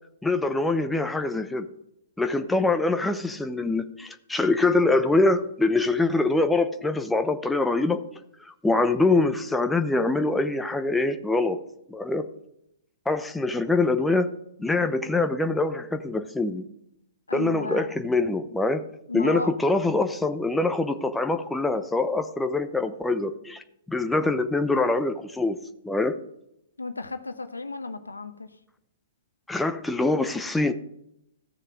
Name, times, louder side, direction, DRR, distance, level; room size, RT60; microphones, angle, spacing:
voice 1, 0.2-1.7 2.2-8.0 8.4-11.6 11.9-12.3 13.1-14.3 14.6-16.6 17.3-18.8 19.1-23.6 23.9-25.6 25.8-26.2 29.5-30.7, left 2 dB, 5° left, 7 dB, 0.8 m, -24 dB
voice 2, 17.3-17.9 19.1-19.5 26.8-28.5, left 2 dB, 85° left, 10 dB, 0.9 m, -33 dB
15.5 x 6.6 x 3.7 m, 0.77 s
figure-of-eight pair, 115°, 0 cm